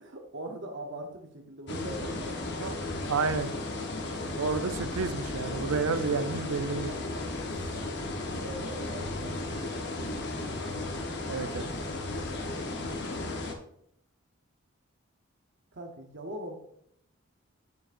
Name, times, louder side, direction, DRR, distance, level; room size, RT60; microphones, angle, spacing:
voice 1, 0.0-2.7 8.3-10.7 15.7-16.6, right 1 dB, 55° right, 2 dB, 0.9 m, -42 dB
sound 1, 1.7-13.5, left 2 dB, 55° left, 1.1 m, -35 dB
voice 2, 3.1-3.5 4.4-6.9 11.3-11.7, right 4 dB, 90° right, 11 dB, 0.6 m, -30 dB
9.4 x 7.7 x 2.6 m, 0.72 s
head